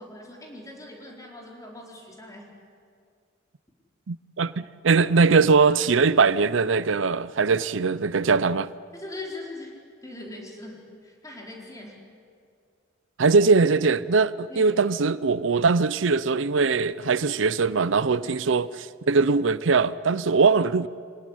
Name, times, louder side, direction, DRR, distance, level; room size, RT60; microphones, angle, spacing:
voice 1, 0.0-2.5 8.9-9.7 10.0-12.0 14.5-14.8 18.2-18.4, left 2 dB, 20° left, 4.5 m, -41 dB
voice 2, 4.1-8.7 13.2-18.7 19.1-20.9, right 4 dB, 90° right, 0.6 m, -21 dB
26.5 x 18.5 x 10.0 m
head